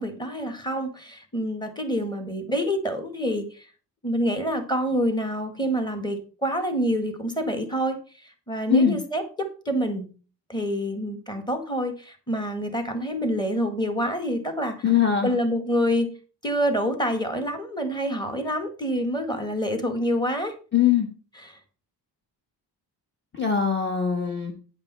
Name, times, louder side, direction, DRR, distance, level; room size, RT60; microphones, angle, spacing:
voice 1, 0.0-3.7 4.0-10.1 10.5-14.9 15.2-16.1 16.4-20.5 21.4-21.6, equal, 10° left, 7 dB, 1.7 m, -27 dB
voice 2, 14.8-15.3 20.7-21.1 23.3-24.5, left 7 dB, 25° left, 3 dB, 1.3 m, -21 dB
9.4 x 5.3 x 5.4 m, 0.36 s
cardioid pair, 130°, 42 cm